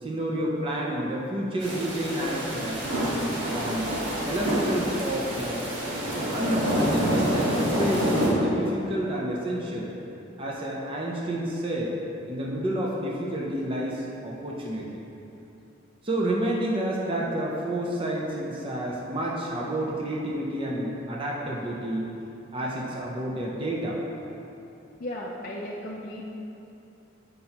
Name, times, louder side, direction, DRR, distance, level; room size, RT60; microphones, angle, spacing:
voice 1, 0.0-2.9 3.5-3.9 4.2-5.7 6.3-9.9 10.4-11.9 12.3-14.8 16.0-22.1 22.5-24.0, right 1 dB, 25° right, -3 dB, 0.6 m, -29 dB
sound 1, 1.6-8.3, equal, 65° right, 1.5 m, -27 dB
voice 2, 25.0-26.3, left 1 dB, 45° left, -4 dB, 0.4 m, -35 dB
7.5 x 5.4 x 2.9 m, 2.9 s
head